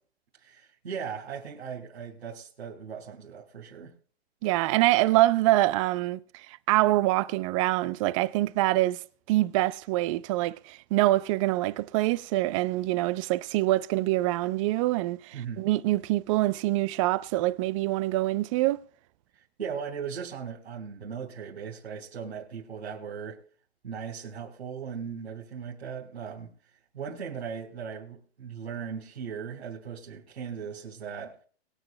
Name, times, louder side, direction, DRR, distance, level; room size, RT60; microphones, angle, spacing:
voice 1, 0.4-3.9 15.3-15.6 19.3-23.4 23.8-26.5 26.9-31.4, right 7 dB, 85° right, 4.4 m, -38 dB
voice 2, 4.4-6.2 6.5-9.0 9.3-18.8, right 17 dB, 30° right, 0.6 m, -25 dB
23.5 x 9.5 x 2.2 m
hypercardioid pair, 140°, 32 cm